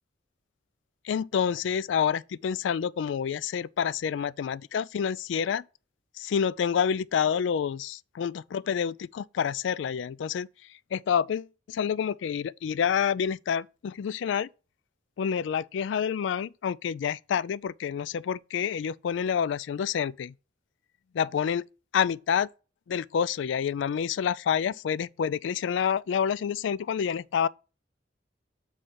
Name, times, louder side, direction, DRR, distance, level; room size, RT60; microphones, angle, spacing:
voice 1, 1.0-5.6 6.2-10.5 10.9-14.5 15.2-20.3 21.1-21.7 21.9-22.5 22.9-27.5, left 7 dB, 80° left, 0.3 m, -28 dB
7.8 x 3.2 x 5.7 m
head